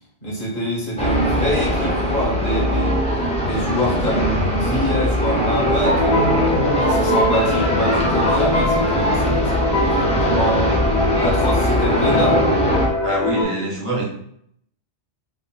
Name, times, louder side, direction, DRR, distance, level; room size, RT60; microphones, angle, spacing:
voice 1, 0.2-3.0 3.4-6.3 6.7-10.8 11.2-12.5, equal, 50° left, -4 dB, 1.2 m, -25 dB
sound 1, 1.0-12.9, equal, 10° left, 0.3 m, -21 dB
sound 2, 5.9-13.4, left 1 dB, 75° left, 1.0 m, -22 dB
voice 2, 13.0-14.0, right 1 dB, 35° right, -5 dB, 0.7 m, -24 dB
3.5 x 2.4 x 2.2 m, 0.71 s
omnidirectional pair, 1.2 m